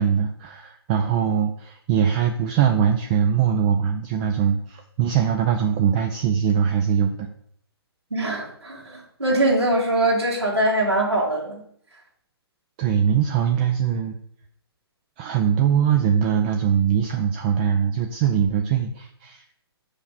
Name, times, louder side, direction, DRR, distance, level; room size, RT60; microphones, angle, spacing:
voice 1, 0.0-7.3 12.8-14.2 15.2-19.4, right 8 dB, 20° right, 5 dB, 0.4 m, -22 dB
voice 2, 8.1-11.6, right 1 dB, 80° right, -6 dB, 2.0 m, -22 dB
5.7 x 5.0 x 5.3 m, 0.66 s
figure-of-eight pair, 130°, 14 cm